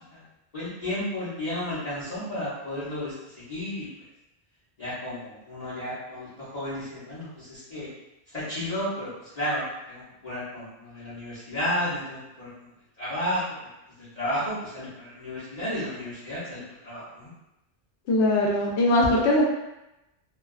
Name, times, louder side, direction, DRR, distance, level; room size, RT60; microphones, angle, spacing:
voice 1, 0.5-3.9 4.8-7.9 8.3-12.7 13.0-13.4 14.0-17.3, left 1 dB, 40° left, -13 dB, 0.9 m, -32 dB
voice 2, 18.1-19.4, left 1 dB, 90° left, -1 dB, 0.9 m, -21 dB
2.4 x 2.3 x 2.3 m, 0.91 s
omnidirectional pair, 1.1 m